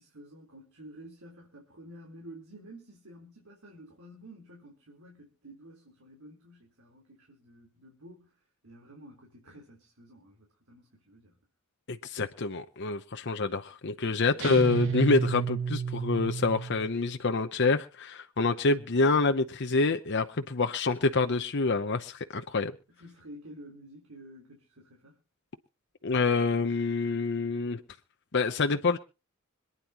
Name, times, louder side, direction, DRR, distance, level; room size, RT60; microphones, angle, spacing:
voice 1, 0.0-11.4 22.9-25.2, right 1 dB, 90° right, 3.9 m, -51 dB
voice 2, 11.9-22.7 26.0-27.8 28.3-29.0, left 3 dB, 55° left, 0.8 m, -27 dB
sound 1, 14.4-17.0, right 5 dB, 65° right, 1.4 m, -31 dB
26.0 x 9.8 x 3.0 m
head